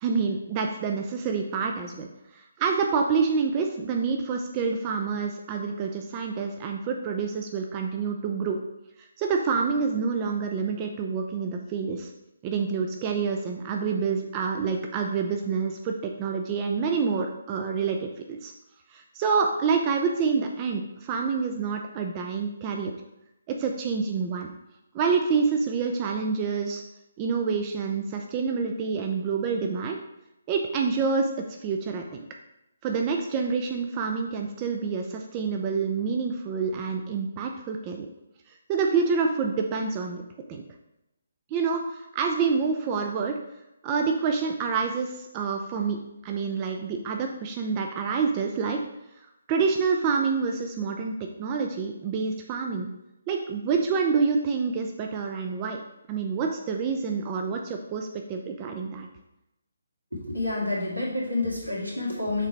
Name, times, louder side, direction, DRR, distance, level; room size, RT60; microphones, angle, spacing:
voice 1, 0.0-8.6 9.0-12.1 12.4-18.5 18.9-22.9 23.5-24.5 24.9-26.8 27.2-30.0 30.5-31.3 31.6-32.3 32.8-38.1 38.5-40.2 40.5-40.6 41.5-43.4 43.8-48.8 49.5-52.9 53.3-55.8 56.1-59.1, right 5 dB, 20° right, 3 dB, 0.5 m, -27 dB
voice 2, 60.1-62.5, left 2 dB, 85° right, -3 dB, 2.3 m, -29 dB
6.6 x 3.9 x 4.5 m, 0.89 s
figure-of-eight pair, 140°, 0 cm